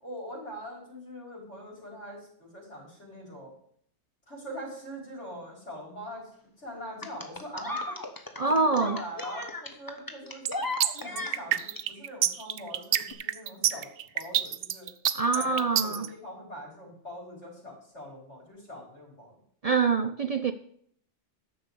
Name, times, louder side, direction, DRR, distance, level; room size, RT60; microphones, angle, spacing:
voice 1, 0.0-3.5 4.3-6.3 6.6-8.0 8.5-10.7 11.0-13.9 14.1-14.9 15.3-19.3, equal, 80° left, -2 dB, 5.4 m, -42 dB
sound 1, 7.0-11.8 13.0-13.1, left 2 dB, 20° left, 1.0 m, -36 dB
voice 2, 8.4-9.0 15.1-16.1 19.6-20.5, right 4 dB, 45° right, 8 dB, 0.5 m, -25 dB
sound 2, 10.5-16.1, right 11 dB, 85° right, 0.9 m, -27 dB
10.5 x 7.0 x 6.8 m, 0.63 s
omnidirectional pair, 1.2 m